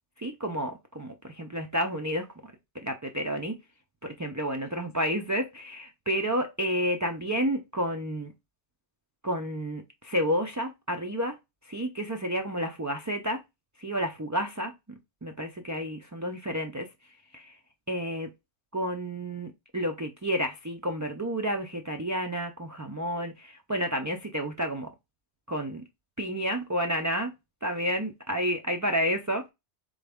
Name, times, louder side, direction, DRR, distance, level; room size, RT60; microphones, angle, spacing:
voice 1, 0.2-3.6 4.0-8.3 9.2-11.4 11.6-13.4 13.8-14.7 15.2-16.9 17.3-17.6 17.9-18.3 18.7-24.9 25.5-25.8 26.2-27.3 27.6-29.5, equal, 30° right, 0.3 m, -30 dB
3.9 x 3.4 x 3.5 m
omnidirectional pair, 1.2 m